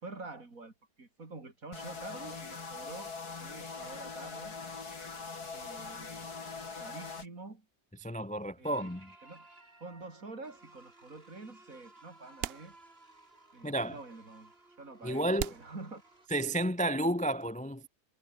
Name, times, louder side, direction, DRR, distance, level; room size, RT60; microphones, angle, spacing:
voice 1, 0.0-3.1 3.4-4.6 5.5-6.3 6.7-7.7 8.6-8.9 9.2-9.5 9.8-12.8 13.5-16.0, right 3 dB, 60° right, 4.2 m, -47 dB
sound 1, 1.7-7.3, left 4 dB, 80° left, 3.4 m, -42 dB
voice 2, 8.0-9.1 13.6-14.0 15.0-15.5 16.3-17.9, right 1 dB, 10° left, 0.5 m, -31 dB
sound 2, 8.6-16.3, right 2 dB, 40° right, 4.5 m, -58 dB
sound 3, 10.5-10.6 11.8-11.9 12.4-13.3 13.6-13.7 14.5-14.6 15.4-16.6, right 12 dB, 75° right, 0.5 m, -41 dB
omnidirectional pair, 1.6 m